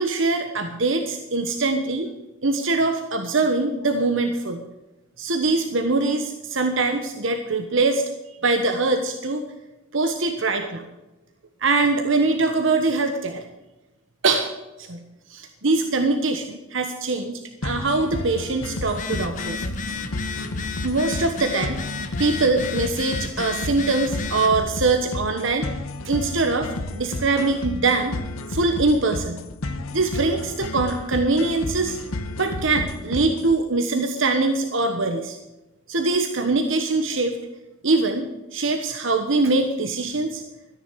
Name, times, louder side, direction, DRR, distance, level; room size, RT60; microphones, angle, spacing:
voice 1, 0.0-2.1 2.4-4.6 5.2-8.0 8.4-9.4 9.9-10.8 11.6-13.4 14.2-14.5 14.8-15.0 15.3-19.6 20.8-21.8 22.2-25.7 26.0-28.1 28.5-29.4 29.9-32.0 32.4-35.4 35.9-37.4 37.8-40.4, right 3 dB, 65° right, 5 dB, 1.2 m, -23 dB
sound 1, 17.6-33.6, left 2 dB, 85° left, 1.1 m, -32 dB
Telephone, 18.9-24.6, left 4 dB, 35° left, 1.0 m, -33 dB
13.5 x 10.0 x 6.3 m, 1.0 s
head